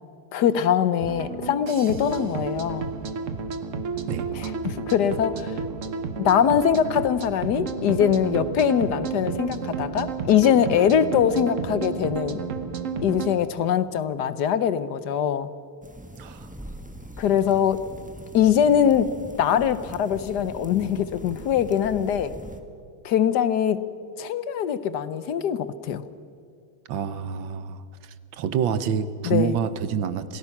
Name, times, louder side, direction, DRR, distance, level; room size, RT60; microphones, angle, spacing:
voice 1, 0.3-2.9 4.3-5.5 6.2-12.4 13.0-15.5 17.2-17.8 18.3-19.1 19.4-22.3 23.0-23.9 24.2-26.0 29.2-29.6, left 8 dB, 65° left, 14 dB, 1.2 m, -22 dB
sound 1, 1.0-13.3, right 5 dB, 45° right, 1.3 m, -31 dB
sound 2, 15.8-22.6, right 1 dB, 5° right, 0.9 m, -41 dB
voice 2, 26.9-27.8 28.4-30.4, right 7 dB, 70° right, 13 dB, 1.6 m, -27 dB
27.0 x 18.0 x 5.9 m, 2.4 s
omnidirectional pair, 2.2 m